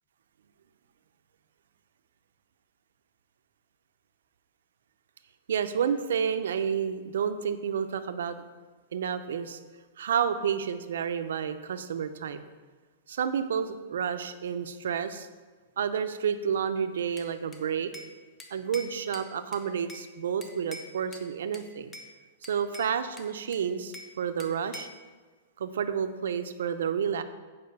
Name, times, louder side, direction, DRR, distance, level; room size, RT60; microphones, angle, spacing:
voice 1, 5.5-8.4 8.9-9.6 10.0-12.4 13.1-15.3 15.8-17.9 18.5-22.0 22.5-24.9 25.6-27.2, right 7 dB, 85° right, 10 dB, 0.7 m, -30 dB
Bell / Glass, 17.2-18.1 18.4-20.1 20.4-21.3 21.5-22.1 22.4-24.1 24.4-25.0, left 1 dB, 15° left, 0.8 m, -45 dB
8.7 x 5.0 x 6.9 m, 1.4 s
supercardioid pair, 170°, 0 cm